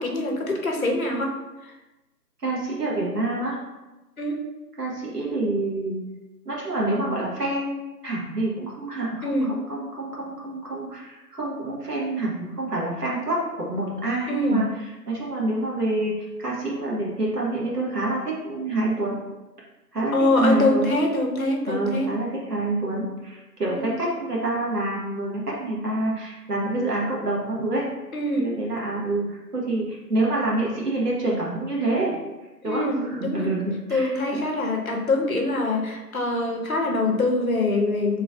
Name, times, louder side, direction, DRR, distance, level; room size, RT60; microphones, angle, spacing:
voice 1, 0.0-1.4 4.2-4.4 9.2-9.5 14.3-14.6 20.1-22.1 23.7-24.0 28.1-28.5 32.6-33.5 33.9-38.2, left 2 dB, 55° left, 2 dB, 0.7 m, -24 dB
voice 2, 2.4-3.6 4.8-6.0 6.4-14.6 15.1-19.2 19.9-20.9 21.7-27.8 28.3-32.1 32.6-34.4, right 2 dB, 70° right, -5 dB, 1.4 m, -27 dB
3.8 x 3.0 x 2.5 m, 1.1 s
figure-of-eight pair, 180°, 50 cm